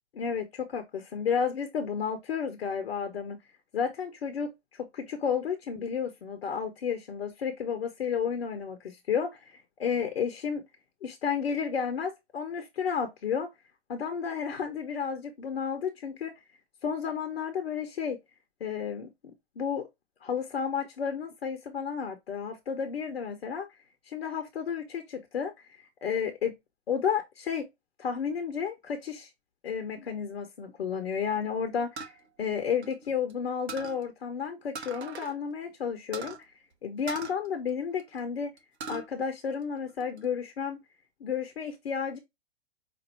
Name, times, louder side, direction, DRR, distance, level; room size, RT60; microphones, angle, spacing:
voice 1, 0.1-3.4 3.7-10.6 11.0-13.5 13.9-16.3 16.8-18.2 18.6-19.9 20.2-23.7 24.1-26.6 26.9-27.7 28.0-29.3 29.6-32.0 32.4-36.5 36.8-38.5 38.9-40.8 41.2-42.2, left 7 dB, 60° left, 0.9 m, -32 dB
sound 1, 32.0-33.3 33.7-34.0 34.7-35.4 35.6-35.7 36.1-36.4 37.1-38.2 38.6-39.1 39.5-40.2, right 4 dB, 65° right, 1.0 m, -41 dB
5.2 x 2.7 x 2.6 m
figure-of-eight pair, 110°, 35 cm